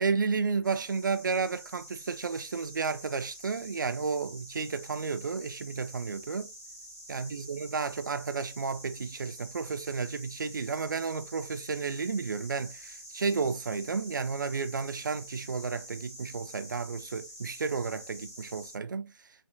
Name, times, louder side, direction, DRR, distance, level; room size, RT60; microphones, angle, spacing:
voice 1, 0.0-6.5 7.1-19.1, right 5 dB, 40° right, 0.5 m, -32 dB
sound 1, 0.6-18.7, equal, 10° left, 1.7 m, -48 dB
4.4 x 3.6 x 2.6 m
figure-of-eight pair, 150°, 16 cm